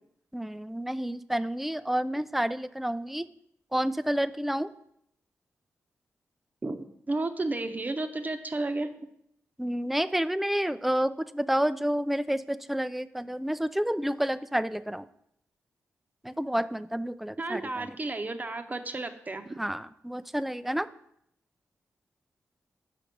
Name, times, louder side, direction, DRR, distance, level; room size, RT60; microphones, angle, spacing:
voice 1, 0.3-3.3 3.7-4.7 9.6-15.0 16.2-17.9 19.6-20.9, equal, 5° right, 15 dB, 0.3 m, -29 dB
voice 2, 6.6-8.9 17.4-19.6, right 2 dB, 30° right, 8 dB, 0.8 m, -32 dB
6.0 x 5.8 x 5.1 m, 0.75 s
cardioid pair, 60°, 5 cm